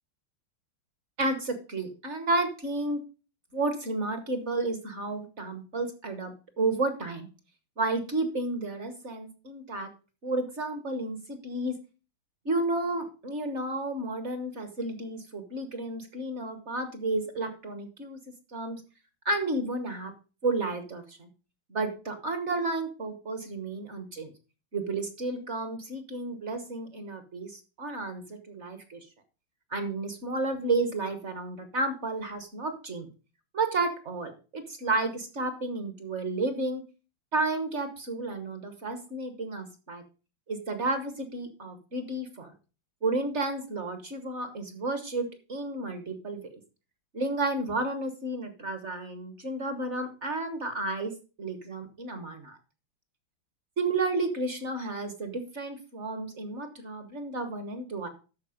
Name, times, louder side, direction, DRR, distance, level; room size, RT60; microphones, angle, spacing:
voice 1, 1.2-3.0 3.5-7.3 7.8-9.9 10.2-11.7 12.4-18.2 18.5-18.8 19.2-20.1 20.4-21.3 21.7-24.3 24.7-29.0 29.7-33.1 33.5-36.8 37.3-40.0 40.5-42.5 43.0-46.6 47.1-51.1 51.4-52.6 53.8-58.1, right 2 dB, 40° right, 8 dB, 1.2 m, -32 dB
12.5 x 4.7 x 5.0 m, 0.34 s
omnidirectional pair, 2.4 m